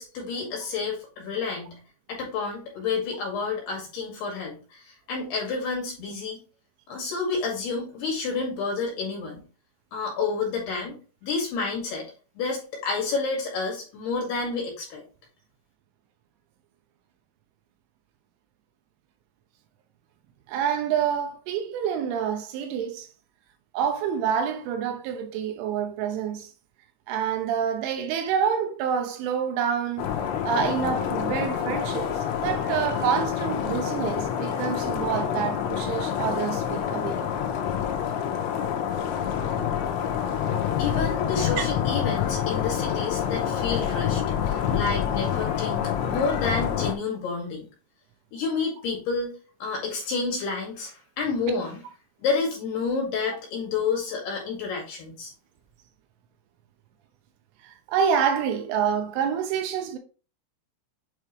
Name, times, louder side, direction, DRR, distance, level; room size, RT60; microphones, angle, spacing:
voice 1, 0.0-1.8 2.1-6.4 6.9-9.4 9.9-11.0 11.2-12.1 12.4-15.0 40.8-47.7 48.3-49.3 49.6-51.8 52.2-55.3, left 4 dB, 60° left, 3.7 m, -29 dB
voice 2, 20.5-23.1 23.7-26.5 27.1-30.1 30.4-32.1 32.4-37.2 41.6-41.7 57.6-60.0, right 7 dB, 80° right, 3.3 m, -27 dB
sound 1, 30.0-46.9, left 9 dB, 80° left, 3.2 m, -27 dB
8.9 x 3.5 x 3.2 m
omnidirectional pair, 5.7 m